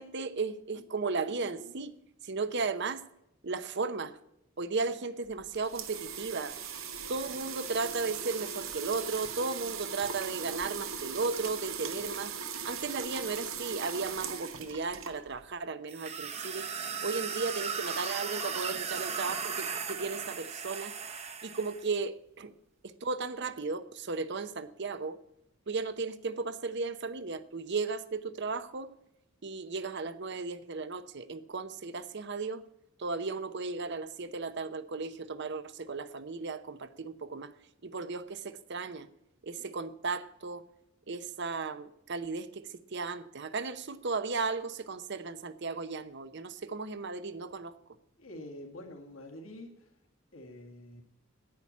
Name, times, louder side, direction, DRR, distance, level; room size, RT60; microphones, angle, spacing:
voice 1, 0.0-1.9 2.2-3.0 3.4-4.2 4.6-6.6 7.1-12.4 12.7-16.7 17.0-20.9 21.4-22.5 22.8-25.2 25.7-28.9 29.4-32.6 33.0-37.5 37.8-39.1 39.4-40.6 41.1-47.7, right 4 dB, 60° right, 13 dB, 0.8 m, -35 dB
sound 1, 5.3-15.5, right 6 dB, 90° right, 1.4 m, -39 dB
sound 2, 15.9-21.8, right 6 dB, 30° right, 0.9 m, -36 dB
voice 2, 48.2-49.9 50.3-51.0, left 1 dB, 80° left, 2 dB, 2.0 m, -46 dB
10.5 x 8.7 x 8.4 m, 0.80 s
head